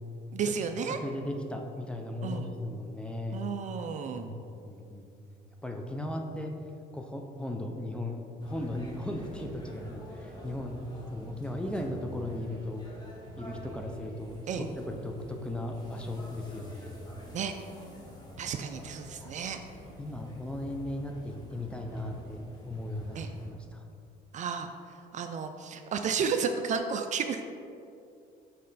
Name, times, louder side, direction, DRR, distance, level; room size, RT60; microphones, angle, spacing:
voice 1, 0.3-1.0 2.2-2.5 3.3-4.3 14.5-14.6 17.3-17.5 18.4-19.6 23.1-23.3 24.3-24.7 25.1-27.4, right 6 dB, 45° right, 7 dB, 0.4 m, -32 dB
voice 2, 0.9-3.4 4.2-5.1 5.6-6.5 6.9-10.8 11.1-12.8 13.4-16.9 19.2-19.3 20.0-23.2 23.4-23.9, left 1 dB, 5° left, 3 dB, 0.6 m, -37 dB
sound 1, 8.4-23.5, left 1 dB, 25° left, 1.3 m, -47 dB
6.5 x 4.2 x 4.0 m, 2.6 s
cardioid pair, 110°, 17 cm